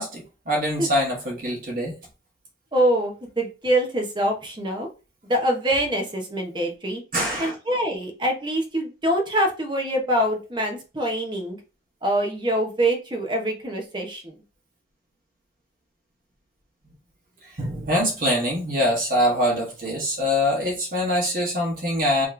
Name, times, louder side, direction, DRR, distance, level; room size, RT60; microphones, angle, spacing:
voice 1, 0.0-1.9 7.1-7.5 17.6-22.3, equal, 50° right, -2 dB, 1.5 m, -24 dB
voice 2, 2.7-4.9 5.3-7.0 7.4-11.6 12.0-14.3, right 1 dB, 25° right, 2 dB, 0.9 m, -24 dB
3.7 x 3.1 x 3.2 m, 0.31 s
head